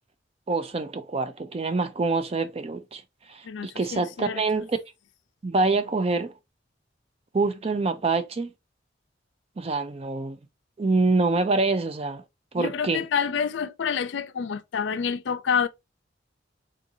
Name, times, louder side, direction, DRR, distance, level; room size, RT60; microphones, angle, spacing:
voice 1, 0.5-3.0 3.3-4.8 5.4-6.3 7.3-8.5 9.6-10.4 10.8-12.2 12.5-13.0, right 3 dB, 35° right, 0.4 m, -25 dB
voice 2, 3.4-4.4 12.6-15.7, left 7 dB, 75° left, 0.4 m, -28 dB
3.7 x 2.6 x 2.7 m
head